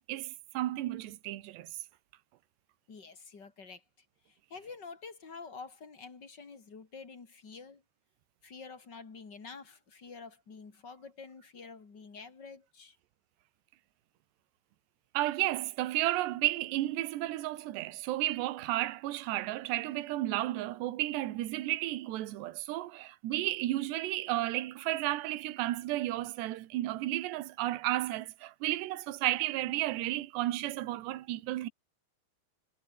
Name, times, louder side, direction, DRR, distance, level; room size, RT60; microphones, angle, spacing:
voice 1, 0.1-1.7 15.1-31.7, right 16 dB, 65° right, 3.2 m, -33 dB
voice 2, 2.9-7.8 8.4-13.0, left 4 dB, 30° left, 2.3 m, -48 dB
omnidirectional pair, 5.8 m